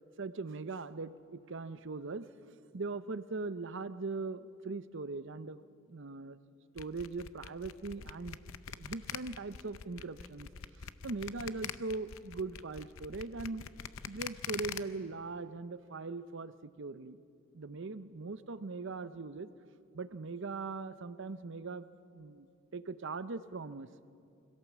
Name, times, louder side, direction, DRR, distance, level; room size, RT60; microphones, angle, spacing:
voice 1, 0.2-2.3 2.7-5.6 5.9-6.4 6.7-8.4 8.8-10.5 11.0-13.7 14.1-17.2 17.5-19.5 19.9-21.9 22.1-22.5 22.7-23.9, right 3 dB, 60° right, 13 dB, 0.7 m, -40 dB
sound 1, 6.8-14.8, left 8 dB, 70° left, 0.6 m, -43 dB
25.0 x 17.0 x 7.4 m, 2.5 s
head